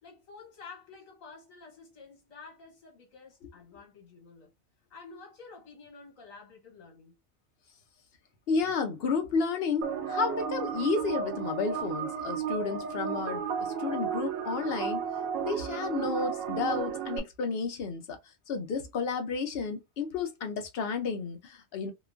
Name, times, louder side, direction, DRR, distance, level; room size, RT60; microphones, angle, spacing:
voice 1, 0.0-4.5 4.9-7.2, left 4 dB, 80° left, 1.4 m, -50 dB
voice 2, 8.5-15.1 15.4-18.2 18.5-21.9, left 4 dB, 55° left, 0.8 m, -32 dB
sound 1, 9.8-17.2, right 7 dB, 80° right, 1.0 m, -33 dB
2.9 x 2.1 x 2.4 m
omnidirectional pair, 1.4 m